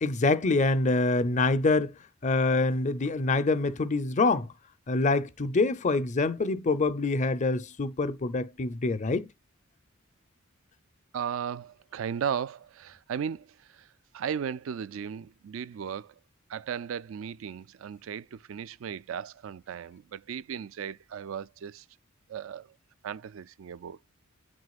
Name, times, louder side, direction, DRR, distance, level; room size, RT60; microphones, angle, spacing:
voice 1, 0.0-1.9 2.2-4.5 4.9-9.3, left 3 dB, 35° left, 0.6 m, -25 dB
voice 2, 11.1-13.9 14.1-16.1 16.5-21.9 22.3-22.7 23.0-24.0, right 7 dB, 70° right, 0.4 m, -36 dB
9.5 x 6.3 x 2.4 m
head